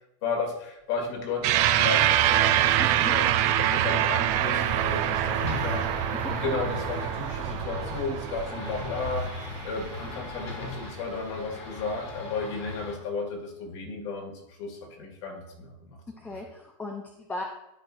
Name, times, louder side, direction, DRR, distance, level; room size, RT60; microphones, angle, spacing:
voice 1, 0.2-3.2 3.6-9.3 9.6-16.0, left 4 dB, 60° left, 1 dB, 2.3 m, -34 dB
sound 1, 1.0-12.6, right 2 dB, 70° right, 1.7 m, -42 dB
sound 2, 1.4-10.1, right 12 dB, 45° right, 0.6 m, -25 dB
voice 2, 2.8-3.2 6.2-6.4 16.2-17.4, left 2 dB, 10° left, 1 dB, 0.6 m, -37 dB
sound 3, 4.5-13.0, left 4 dB, 40° left, 1.4 m, -39 dB
11.5 x 4.6 x 2.6 m, 0.84 s
supercardioid pair, 130°, 17 cm